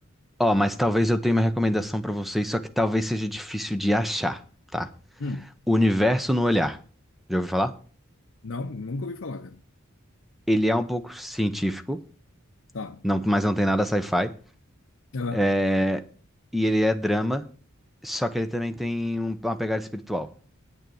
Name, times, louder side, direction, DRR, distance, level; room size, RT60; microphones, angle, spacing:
voice 1, 0.4-4.4 4.7-4.9 5.7-6.8 7.3-7.7 10.5-12.0 13.0-14.3 15.3-16.0 16.5-17.4 18.0-20.3, equal, ahead, 0.7 m, -24 dB
voice 2, 8.4-9.6 12.7-13.1 15.1-15.4, left 3 dB, 65° left, 0.6 m, -33 dB
9.1 x 6.6 x 6.9 m
head